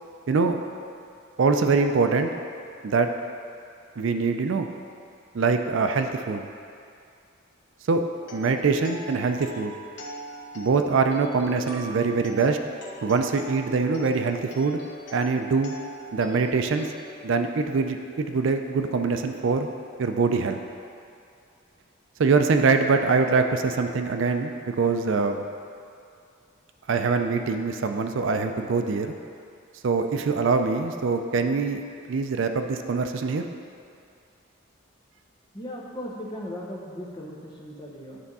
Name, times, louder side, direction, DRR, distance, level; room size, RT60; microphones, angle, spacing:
voice 1, 0.3-0.6 1.4-2.3 2.8-3.1 4.0-4.7 5.3-6.5 7.9-8.0 8.3-9.7 10.5-12.6 13.0-14.8 15.1-15.7 16.1-16.9 17.2-19.7 20.0-20.6 22.2-25.4 26.9-29.1 29.8-31.8 32.1-33.5, right 4 dB, 65° right, 6 dB, 0.4 m, -23 dB
sound 1, 8.2-18.1, right 1 dB, 55° left, 1.0 m, -43 dB
voice 2, 35.5-38.2, equal, 20° left, -3 dB, 0.9 m, -37 dB
9.7 x 3.5 x 5.4 m, 2.5 s
head